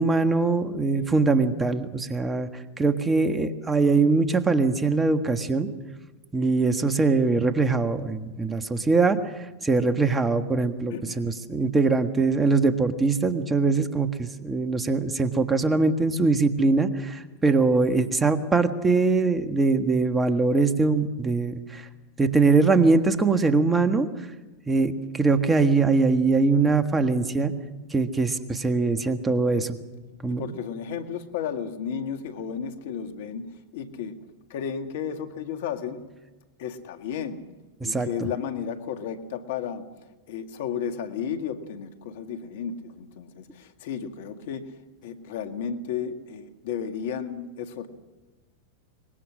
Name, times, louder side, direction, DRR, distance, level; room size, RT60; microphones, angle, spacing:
voice 1, 0.0-5.7 6.3-9.2 9.6-21.8 22.2-24.1 24.7-27.5 27.9-29.8 30.2-30.4 37.8-38.1, right 3 dB, 15° right, 8 dB, 1.6 m, -22 dB
voice 2, 10.9-11.3 30.3-34.2 34.5-36.1 36.6-37.5 37.8-39.9 40.3-44.7 45.0-47.9, left 7 dB, 65° left, 7 dB, 1.9 m, -33 dB
23.5 x 21.0 x 6.3 m, 1.1 s
hypercardioid pair, 100°, 0 cm